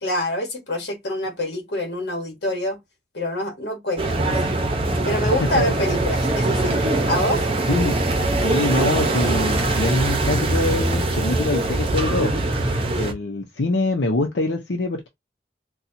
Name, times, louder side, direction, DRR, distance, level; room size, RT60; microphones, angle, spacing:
voice 1, 0.0-2.8 3.1-4.6 5.0-6.8 7.1-7.5, left 1 dB, 65° left, 1.3 m, -26 dB
sound 1, 4.0-13.1, right 2 dB, 30° right, 0.7 m, -22 dB
voice 2, 5.2-5.6 7.7-8.0 8.4-12.3 12.9-15.1, left 2 dB, 90° left, 0.7 m, -24 dB
4.2 x 2.3 x 2.6 m
head